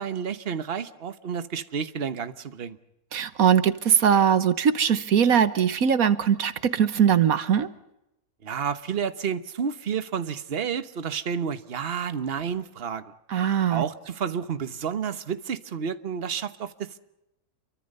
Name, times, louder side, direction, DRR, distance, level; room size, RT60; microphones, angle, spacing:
voice 1, 0.0-2.8 8.4-13.0 13.7-17.0, right 7 dB, 45° right, 1.3 m, -30 dB
voice 2, 3.1-7.7 13.3-13.8, right 8 dB, 70° right, 1.5 m, -21 dB
29.0 x 23.5 x 5.5 m
omnidirectional pair, 1.6 m